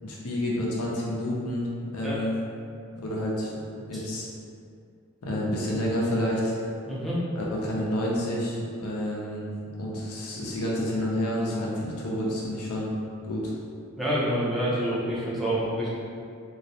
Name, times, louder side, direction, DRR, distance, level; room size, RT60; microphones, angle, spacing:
voice 1, 0.0-1.7 1.9-2.4 3.0-3.5 3.9-4.3 5.2-6.7 7.4-12.9 13.3-13.5, left 1 dB, 90° left, -4 dB, 0.5 m, -29 dB
voice 2, 6.9-7.2 14.0-15.9, equal, ahead, -9 dB, 0.5 m, -27 dB
2.3 x 2.0 x 2.7 m, 2.4 s
head